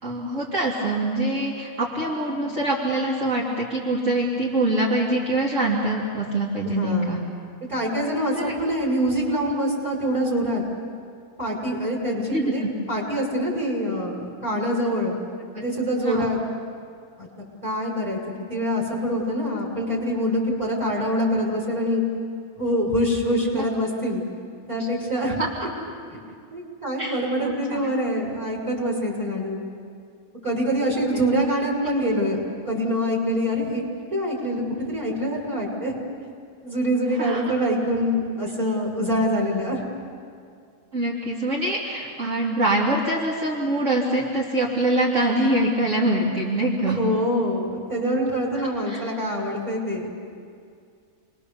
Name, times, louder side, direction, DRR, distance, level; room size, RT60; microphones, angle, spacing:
voice 1, 0.0-7.2 8.3-8.5 12.3-12.7 16.0-16.3 23.5-23.6 24.8-24.9 25.4-25.7 27.0-27.9 31.1-31.2 37.2-37.4 40.9-47.0 48.9-49.0, right 1 dB, 60° right, -5 dB, 2.9 m, -24 dB
voice 2, 6.6-7.1 7.7-10.6 11.4-15.1 15.5-16.4 17.2-17.3 17.6-18.2 18.5-22.0 22.6-24.2 24.7-25.4 26.5-29.6 30.4-32.4 32.6-33.8 34.1-35.9 36.6-39.8 46.3-46.4 46.8-50.1, equal, 20° right, -4 dB, 6.5 m, -25 dB
29.5 x 22.0 x 7.0 m, 2.3 s
omnidirectional pair, 1.5 m